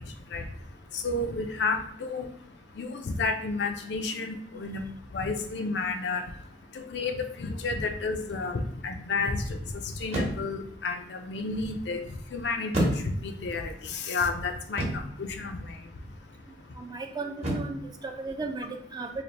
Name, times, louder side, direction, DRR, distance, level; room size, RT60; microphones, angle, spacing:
voice 1, 1.0-2.3 2.8-4.8 5.1-6.2 6.9-9.6 10.0-12.0 12.3-12.9 13.2-15.6, left 3 dB, 70° left, 5 dB, 0.4 m, -31 dB
sound 1, 7.6-8.0 10.1-10.6 12.7-13.5 14.8-15.2 17.4-17.9, right 1 dB, 40° right, 0.9 m, -30 dB
voice 2, 16.8-19.2, right 3 dB, 20° right, 4 dB, 0.3 m, -36 dB
3.2 x 2.4 x 4.0 m, 0.67 s
head